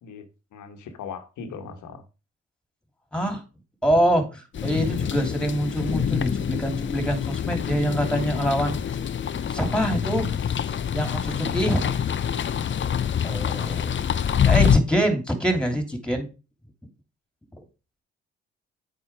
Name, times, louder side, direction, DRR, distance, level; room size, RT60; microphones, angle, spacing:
voice 1, 0.0-2.0, left 6 dB, 65° left, 7 dB, 1.5 m, -39 dB
voice 2, 3.1-3.4 3.8-8.8 9.5-12.0 13.2-14.0 14.4-16.3 17.5-17.6, right 1 dB, 5° left, 6 dB, 2.9 m, -25 dB
sound 1, 4.5-14.8, left 8 dB, 35° left, 0.6 m, -25 dB
8.5 x 4.9 x 4.8 m, 0.31 s
hypercardioid pair, 45°, 32 cm